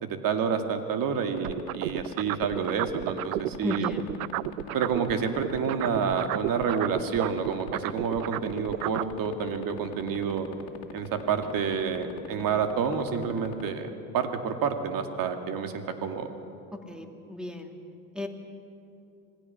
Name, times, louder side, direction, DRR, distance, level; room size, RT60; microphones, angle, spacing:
voice 1, 0.0-3.9 4.7-10.5 10.9-16.3, right 6 dB, 50° right, 6 dB, 2.3 m, -29 dB
sound 1, 1.4-13.7, left 10 dB, 50° left, 2.3 m, -40 dB
sound 2, 1.4-5.1 5.4-9.1, right 16 dB, 80° right, 0.6 m, -32 dB
voice 2, 3.6-4.0 16.7-17.7 18.1-18.3, left 2 dB, ahead, 4 dB, 2.6 m, -34 dB
26.5 x 19.5 x 5.9 m, 2.8 s
hypercardioid pair, 70°, 43 cm